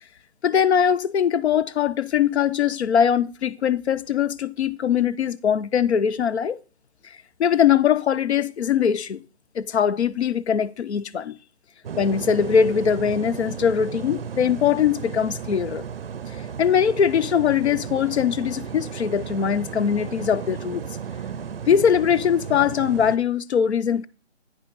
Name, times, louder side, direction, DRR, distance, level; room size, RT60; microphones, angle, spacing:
voice 1, 0.4-6.6 7.4-9.2 9.6-11.4 12.0-15.8 16.6-20.9 21.7-24.1, left 8 dB, 65° left, 0.5 m, -21 dB
sound 1, 11.8-23.2, right 7 dB, 55° right, 0.5 m, -34 dB
9.2 x 5.5 x 3.9 m
hypercardioid pair, 160°, 35 cm